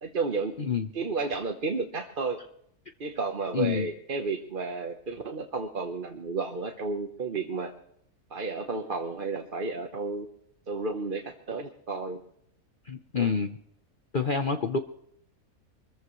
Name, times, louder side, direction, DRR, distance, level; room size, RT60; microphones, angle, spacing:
voice 1, 0.0-0.6 0.9-2.4 3.0-7.7 8.3-10.3 10.7-12.2 13.1-13.3, right 4 dB, 40° right, 4 dB, 1.1 m, -32 dB
voice 2, 3.5-3.9 12.9-13.5 14.1-14.8, left 5 dB, 40° left, 7 dB, 0.8 m, -27 dB
24.5 x 14.5 x 3.1 m, 0.70 s
omnidirectional pair, 1.6 m